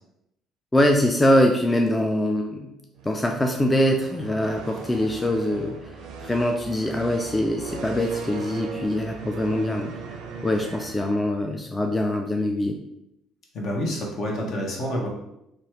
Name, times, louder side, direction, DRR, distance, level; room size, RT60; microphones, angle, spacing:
voice 1, 0.7-2.8 3.0-6.0 6.2-9.9 10.4-12.8, left 1 dB, 15° left, 3 dB, 0.3 m, -23 dB
sound 1, 2.9-11.6, right 5 dB, 75° right, 0.4 m, -38 dB
voice 2, 13.5-15.1, equal, 60° left, -1 dB, 0.9 m, -28 dB
3.0 x 2.4 x 2.9 m, 0.83 s
supercardioid pair, 80°, 0 cm